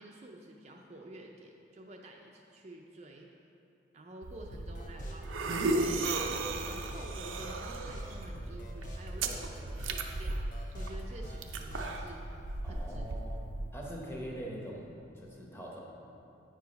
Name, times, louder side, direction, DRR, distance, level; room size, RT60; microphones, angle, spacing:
voice 1, 0.0-3.3 3.9-10.4 10.7-13.1, right 1 dB, 35° right, 1 dB, 0.4 m, -50 dB
sound 1, 4.2-13.7, right 2 dB, 85° right, 0.6 m, -36 dB
sound 2, 4.5-12.1, equal, 40° left, 0.9 m, -47 dB
voice 2, 12.6-15.8, equal, 10° left, -2 dB, 0.9 m, -43 dB
8.8 x 4.8 x 5.1 m, 2.8 s
head